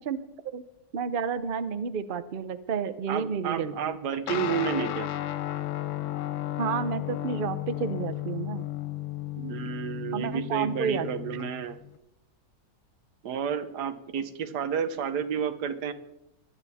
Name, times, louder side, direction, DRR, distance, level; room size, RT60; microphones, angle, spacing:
voice 1, 0.9-3.7 6.6-8.6 10.1-11.1, right 6 dB, 50° right, 13 dB, 0.6 m, -30 dB
voice 2, 3.1-5.1 9.4-11.8 13.2-15.9, right 7 dB, 80° right, 12 dB, 1.5 m, -31 dB
Guitar, 4.3-12.0, left 14 dB, 65° left, 0.8 m, -34 dB
21.0 x 9.1 x 4.2 m, 0.88 s
omnidirectional pair, 1.7 m